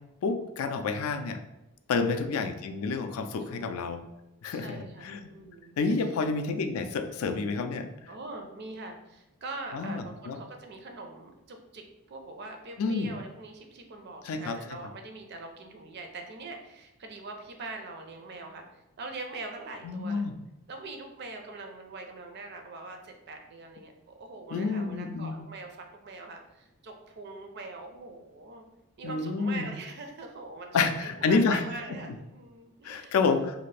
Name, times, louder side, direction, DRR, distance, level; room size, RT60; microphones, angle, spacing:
voice 1, 0.2-1.4 1.9-4.0 4.4-4.8 5.0-5.3 5.8-7.9 9.7-10.4 12.8-13.1 14.3-14.6 19.8-20.3 24.5-25.4 29.0-29.7 30.7-31.6 32.8-33.6, left 4 dB, 70° left, 8 dB, 0.3 m, -29 dB
voice 2, 4.5-6.1 8.1-20.3 20.7-28.6 29.0-33.2, right 3 dB, 50° right, 4 dB, 0.4 m, -43 dB
2.6 x 2.4 x 3.2 m, 0.91 s
head